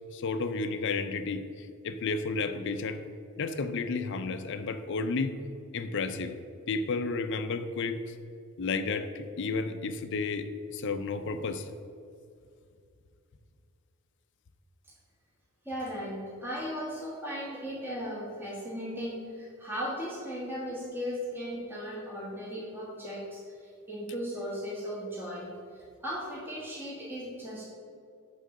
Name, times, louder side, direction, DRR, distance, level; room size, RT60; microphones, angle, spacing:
voice 1, 0.1-3.0 3.4-5.3 5.7-6.4 6.7-8.1 8.6-11.7, left 4 dB, 55° left, 9 dB, 0.5 m, -32 dB
voice 2, 15.6-27.7, equal, 10° right, -6 dB, 1.4 m, -37 dB
9.0 x 3.8 x 6.3 m, 2.4 s
head